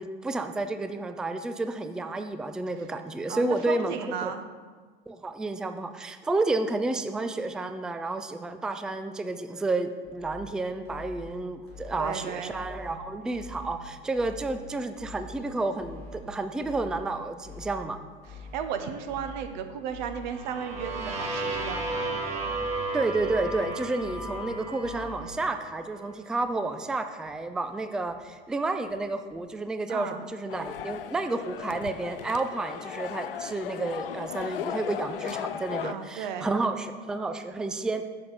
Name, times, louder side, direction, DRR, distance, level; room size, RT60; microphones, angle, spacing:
voice 1, 0.0-4.3 5.1-18.0 22.9-38.0, right 2 dB, ahead, 9 dB, 0.4 m, -31 dB
voice 2, 3.3-4.4 12.0-12.5 18.5-22.1 29.9-30.3 35.8-36.5, right 7 dB, 55° right, 8 dB, 0.9 m, -34 dB
sound 1, 10.0-10.5 10.8-11.3 11.7-12.1 12.5-12.9 13.3-13.7 14.1-14.6 14.9-15.4 15.8-16.2 16.6-17.0 17.4-17.8 18.2-18.7 19.1-19.5 19.9-20.3 20.7-21.1 21.5-21.9 22.3-22.8 23.2-23.6 24.0-24.4 24.8-25.2 25.6-25.7 26.0-26.1 26.4-26.5 26.8-26.9 27.2-27.3 27.7-27.8 28.1-28.2 28.5-28.6 28.9-29.0 29.3-29.4, left 3 dB, 85° right, 2.9 m, -44 dB
sound 2, 20.2-26.1, right 2 dB, 20° right, 2.5 m, -34 dB
sound 3, 30.5-35.9, left 10 dB, 70° left, 0.5 m, -36 dB
10.5 x 7.3 x 4.0 m, 1.5 s
figure-of-eight pair, 80°, 29 cm